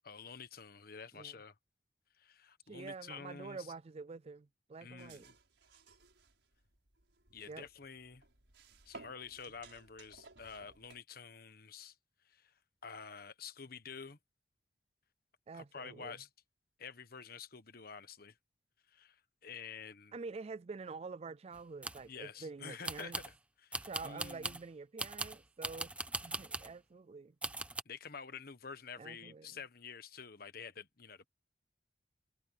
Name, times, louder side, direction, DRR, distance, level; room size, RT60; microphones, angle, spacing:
voice 1, 0.0-1.5 2.2-3.7 4.8-5.3 7.3-8.2 8.8-11.9 12.2-12.5 12.8-14.2 15.5-16.3 16.8-18.4 18.9-20.1 22.1-23.3 23.6-24.6 27.8-31.3, left 6 dB, 55° left, 1.3 m, -49 dB
voice 2, 2.7-5.3 7.5-7.6 15.5-16.2 20.1-23.2 23.8-25.9 26.2-27.4 29.0-29.5, right 4 dB, 35° right, 0.4 m, -47 dB
sound 1, 5.0-11.0, right 3 dB, 85° right, 6.2 m, -58 dB
sound 2, 21.5-22.1 22.8-23.3 23.7-24.6 25.0-26.7 27.4-27.8, right 2 dB, 5° right, 0.9 m, -40 dB
head